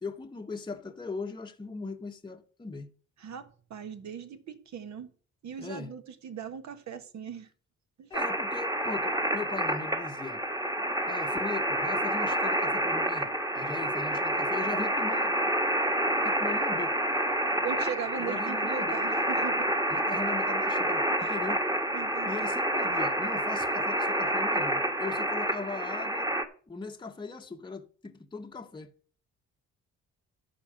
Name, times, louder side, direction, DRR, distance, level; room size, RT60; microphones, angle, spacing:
voice 1, 0.0-2.9 5.6-5.9 8.1-10.4 11.1-15.4 16.2-17.0 18.2-19.0 19.9-21.6 22.2-26.3 26.7-28.9, left 4 dB, 15° left, 0.9 m, -39 dB
voice 2, 3.2-5.1 5.4-7.5 8.0-8.1 17.6-19.7 21.2-21.4 21.9-22.5, right 7 dB, 65° right, 1.6 m, -39 dB
sound 1, 8.1-26.4, right 1 dB, 10° right, 1.4 m, -28 dB
11.5 x 4.4 x 7.7 m
cardioid pair, 90°, 30 cm